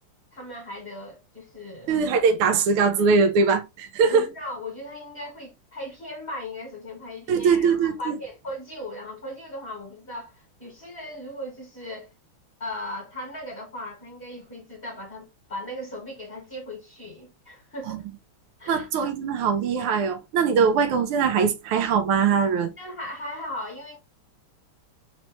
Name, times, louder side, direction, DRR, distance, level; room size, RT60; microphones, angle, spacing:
voice 1, 0.3-1.9 4.0-12.1 12.6-18.0 18.6-18.9 22.8-24.0, left 1 dB, 25° left, 1.8 m, -37 dB
voice 2, 1.9-4.3 7.3-8.1 17.9-18.0 18.7-22.7, right 5 dB, 80° right, 1.6 m, -21 dB
4.1 x 3.1 x 3.0 m
omnidirectional pair, 2.4 m